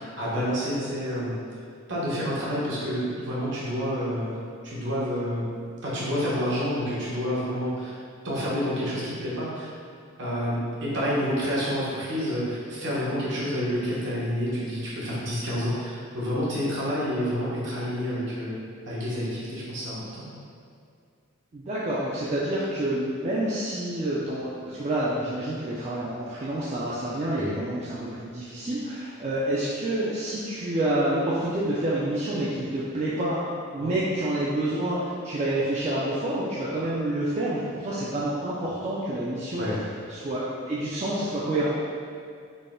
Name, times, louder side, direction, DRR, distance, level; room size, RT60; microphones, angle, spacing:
voice 1, 0.0-1.3 1.9-4.3 4.6-5.5 5.8-8.0 8.2-9.7 10.2-18.5 18.9-20.3 27.3-27.6 33.8-33.9 39.6-39.8, equal, 60° right, -8 dB, 1.0 m, -29 dB
voice 2, 21.5-33.4 33.7-39.8 40.1-41.7, right 1 dB, 35° right, -8 dB, 0.4 m, -28 dB
4.0 x 2.2 x 3.7 m, 2.3 s
head